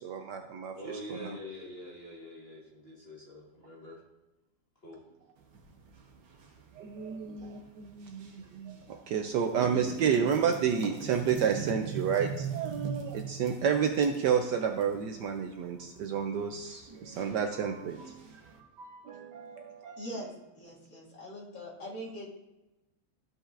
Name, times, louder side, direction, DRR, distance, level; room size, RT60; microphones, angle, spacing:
voice 1, 0.0-0.7 1.1-1.3 6.8-18.4 18.8-20.3, right 7 dB, 70° right, 4 dB, 1.1 m, -31 dB
voice 2, 0.7-4.0 4.8-5.0 7.0-7.2, left 1 dB, 35° left, -5 dB, 1.5 m, -45 dB
sound 1, 5.4-18.6, right 6 dB, 90° right, 1.8 m, -43 dB
voice 3, 20.0-22.3, equal, 70° left, -6 dB, 2.8 m, -42 dB
14.0 x 5.3 x 2.5 m, 1.0 s
omnidirectional pair, 2.1 m